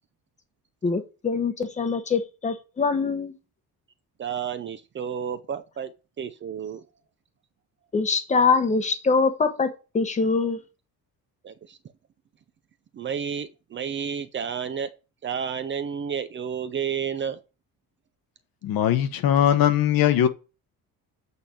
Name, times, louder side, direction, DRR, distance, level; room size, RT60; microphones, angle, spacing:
voice 1, 0.8-3.3 7.9-9.7 9.9-10.6, left 4 dB, 20° left, 0.9 m, -23 dB
voice 2, 4.2-5.9 6.2-6.8 11.4-11.8 12.9-14.9 15.2-17.4, right 7 dB, 30° right, 0.5 m, -31 dB
voice 3, 18.6-20.3, left 10 dB, 65° left, 1.1 m, -20 dB
8.2 x 4.3 x 4.9 m
cardioid pair, 175°, 38 cm